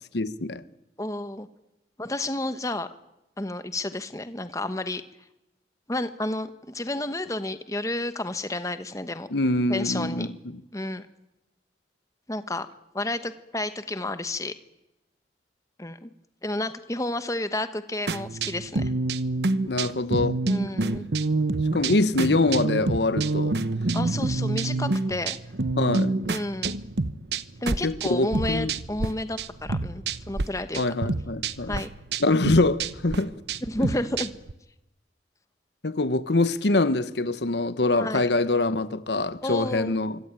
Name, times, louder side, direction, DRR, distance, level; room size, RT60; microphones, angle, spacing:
voice 1, 0.1-0.6 9.3-10.6 19.7-20.4 21.7-23.6 25.8-26.1 27.8-28.7 30.8-31.8 32.2-33.3 35.8-40.2, left 2 dB, 70° left, 1.1 m, -24 dB
voice 2, 1.0-1.5 2.0-2.9 3.4-5.0 5.9-9.3 9.7-10.3 10.7-11.0 12.3-12.7 12.9-14.5 15.8-16.1 16.4-18.9 20.4-21.0 23.9-25.4 26.3-26.7 27.6-30.8 31.6-31.9 33.7-34.3 38.0-38.3 39.4-39.9, left 1 dB, 20° left, 1.1 m, -31 dB
sound 1, 18.1-29.1 29.4-30.4 30.7-34.5, right 3 dB, 65° right, 1.0 m, -27 dB
25.0 x 25.0 x 9.0 m
head